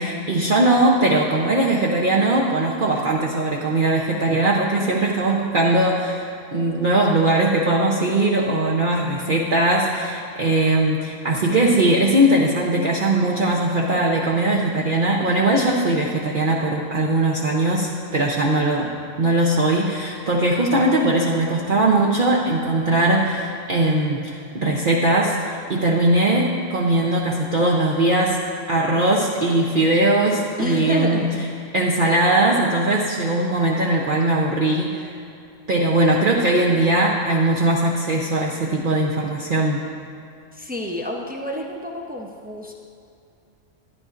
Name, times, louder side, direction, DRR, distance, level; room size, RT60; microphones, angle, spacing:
voice 1, 0.0-18.9 19.2-28.4 28.7-31.2 31.7-35.1 35.7-39.8, right 2 dB, 50° right, -3 dB, 0.8 m, -20 dB
voice 2, 30.6-31.5 40.5-42.7, left 1 dB, 15° right, 0 dB, 0.4 m, -28 dB
13.0 x 10.5 x 2.5 m, 2.5 s
omnidirectional pair, 1.3 m